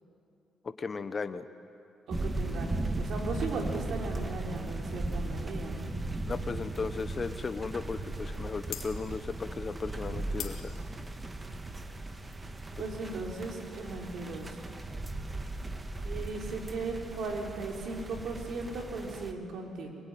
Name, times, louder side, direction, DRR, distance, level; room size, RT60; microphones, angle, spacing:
voice 1, 0.6-1.5 6.2-10.7, left 4 dB, 35° left, 11 dB, 1.1 m, -36 dB
sound 1, 2.1-19.3, right 2 dB, 25° right, 1.8 m, -37 dB
voice 2, 2.1-5.9 12.8-14.7 16.0-19.9, right 3 dB, 70° right, 0 dB, 4.3 m, -37 dB
sound 2, 8.7-13.8, left 8 dB, 70° left, 2.3 m, -46 dB
24.0 x 22.5 x 9.4 m, 2.7 s
cardioid pair, 90°, 0 cm